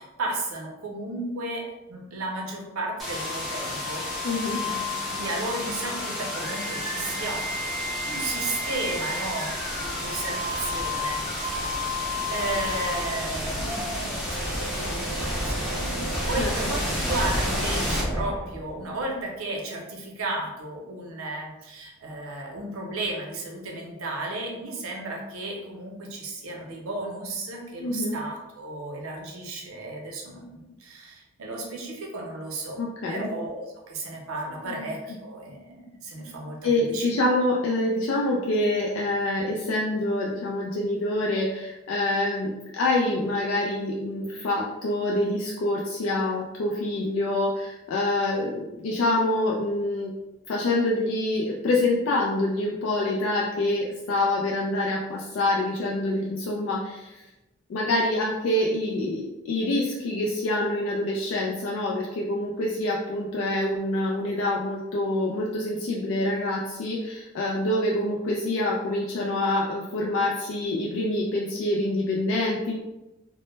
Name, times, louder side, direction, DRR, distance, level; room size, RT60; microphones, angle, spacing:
voice 1, 0.0-4.0 4.6-7.4 8.1-11.9 12.3-32.8 33.1-33.6 33.9-37.3, right 2 dB, 80° right, 0 dB, 0.6 m, -34 dB
sound 1, 3.0-18.8, left 1 dB, ahead, 0.5 m, -30 dB
voice 2, 4.2-4.7 16.4-16.8 27.8-28.1 32.8-33.3 34.7-34.9 36.6-50.1 50.5-57.2 57.7-72.7, left 1 dB, 75° left, -3 dB, 0.3 m, -26 dB
2.1 x 2.0 x 3.0 m, 1.0 s
head